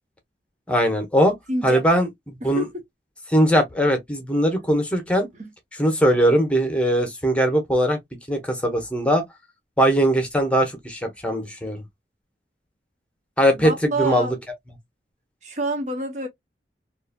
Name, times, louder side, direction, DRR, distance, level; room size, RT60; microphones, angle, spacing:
voice 1, 0.7-1.3 1.6-2.6 3.3-5.3 5.8-8.0 8.3-9.2 9.8-11.8 13.4-13.7 14.0-14.4, equal, 5° left, 0.9 m, -20 dB
voice 2, 1.5-1.9 2.4-2.7 5.4-5.5 13.6-14.3 15.4-16.3, right 2 dB, 40° right, 0.6 m, -27 dB
3.9 x 2.5 x 2.2 m
head